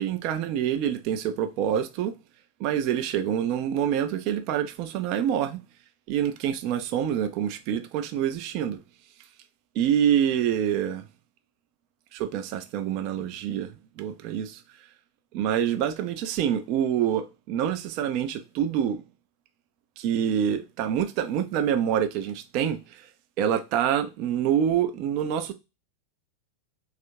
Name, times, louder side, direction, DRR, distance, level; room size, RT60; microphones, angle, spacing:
voice 1, 0.0-2.1 2.6-5.6 6.1-8.8 9.8-11.0 12.1-14.6 15.3-19.0 20.0-23.1 23.4-25.5, right 9 dB, 45° right, 0.4 m, -26 dB
3.4 x 2.4 x 2.6 m
figure-of-eight pair, 90°, 0 cm